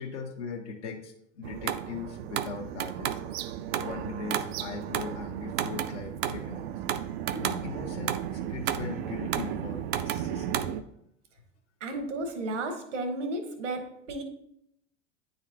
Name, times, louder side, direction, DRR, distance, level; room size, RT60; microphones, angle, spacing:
voice 1, 0.0-3.2 3.7-6.7 7.3-10.7, left 5 dB, 65° left, 0 dB, 1.0 m, -39 dB
sound 1, 1.4-10.8, right 10 dB, 55° right, 0.5 m, -33 dB
voice 2, 11.8-14.2, right 2 dB, 70° right, 6 dB, 1.2 m, -33 dB
9.1 x 4.0 x 2.8 m, 0.75 s
figure-of-eight pair, 85°, 38 cm